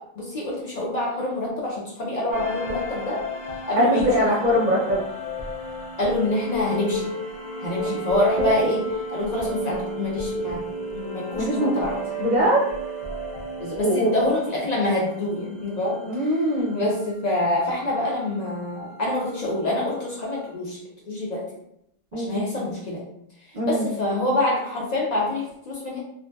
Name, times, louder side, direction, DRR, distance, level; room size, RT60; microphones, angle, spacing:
voice 1, 0.0-3.2 3.7-4.1 6.0-7.1 7.6-8.8 9.1-10.7 10.9-12.0 13.6-16.3 16.7-20.8 21.1-21.4 22.1-23.0 23.4-26.0, left 1 dB, 50° left, -4 dB, 0.6 m, -26 dB
sound 1, 2.3-16.4, equal, 80° left, 0.9 m, -32 dB
voice 2, 3.8-5.0 7.8-7.9 8.4-8.7 11.4-11.7 12.2-12.7 13.8-14.1 16.0-16.8 22.1-22.5 23.5-23.9, equal, 55° right, -4 dB, 0.6 m, -22 dB
2.6 x 2.1 x 2.2 m, 0.76 s
omnidirectional pair, 1.0 m